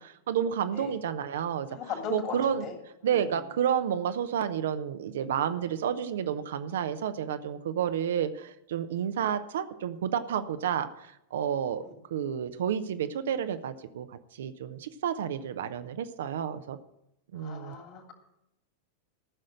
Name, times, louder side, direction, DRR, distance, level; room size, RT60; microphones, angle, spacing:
voice 1, 0.0-1.7 2.1-2.6 3.0-11.8 12.1-14.1 14.3-16.8 17.3-17.7, right 9 dB, 60° right, 10 dB, 0.8 m, -30 dB
voice 2, 1.7-2.7 3.0-3.4 11.8-11.9 17.3-18.1, left 6 dB, 40° left, 3 dB, 2.7 m, -38 dB
14.5 x 6.4 x 7.5 m, 0.82 s
figure-of-eight pair, 90°, 0 cm